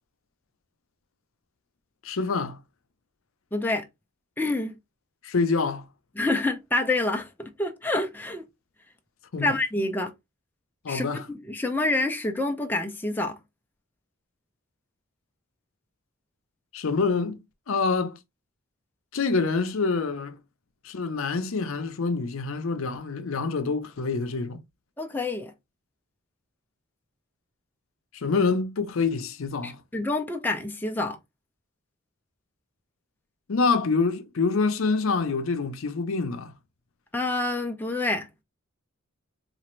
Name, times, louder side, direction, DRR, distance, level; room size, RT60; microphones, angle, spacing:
voice 1, 2.0-2.6 5.2-5.9 9.3-9.5 10.8-11.3 16.7-17.4 17.7-18.2 19.1-20.3 20.8-24.6 28.1-29.8 33.5-36.5, left 4 dB, 75° left, 0.6 m, -26 dB
voice 2, 3.5-3.8 4.4-4.7 6.2-8.4 9.4-10.1 10.9-11.1 11.4-13.4 25.0-25.5 29.6-31.2 37.1-38.3, left 2 dB, 10° left, 0.4 m, -27 dB
4.1 x 2.5 x 3.0 m
head